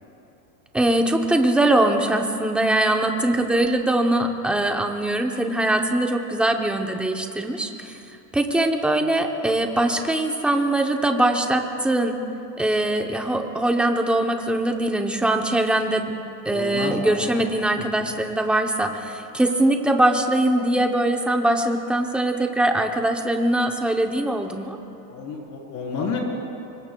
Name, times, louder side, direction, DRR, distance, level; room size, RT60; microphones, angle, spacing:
voice 1, 0.7-7.9 8.3-12.2 12.6-16.1 16.5-24.8, right 1 dB, ahead, 4 dB, 0.5 m, -22 dB
voice 2, 16.5-17.2 25.1-26.2, left 5 dB, 35° left, -1 dB, 3.5 m, -30 dB
25.0 x 25.0 x 2.2 m, 3.0 s
supercardioid pair, 150°, 49 cm